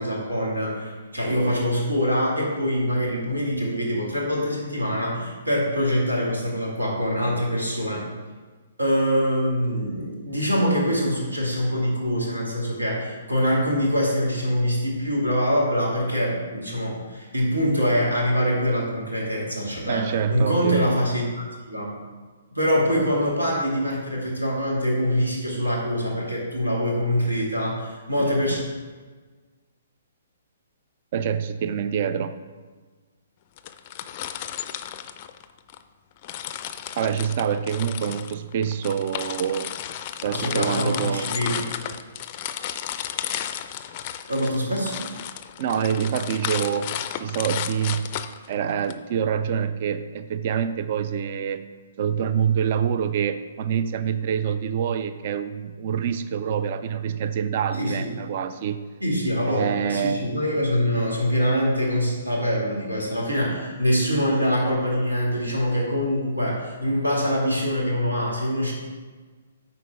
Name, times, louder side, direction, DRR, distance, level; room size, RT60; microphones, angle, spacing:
voice 1, 0.0-8.0 8.8-21.3 21.6-22.0 22.5-28.6 40.3-41.6 44.3-45.0 57.8-58.1 59.0-68.7, equal, 80° right, -3 dB, 2.3 m, -24 dB
voice 2, 19.9-20.8 28.2-28.6 31.1-32.4 37.0-39.7 40.2-41.4 45.6-46.9 47.2-48.1 48.5-51.6 52.0-58.8 59.5-60.4, right 8 dB, 40° right, 11 dB, 0.4 m, -26 dB
sound 1, 33.6-35.8 36.2-48.9, left 10 dB, 35° left, 0.4 m, -33 dB
9.1 x 4.2 x 5.1 m, 1.4 s
figure-of-eight pair, 125°, 0 cm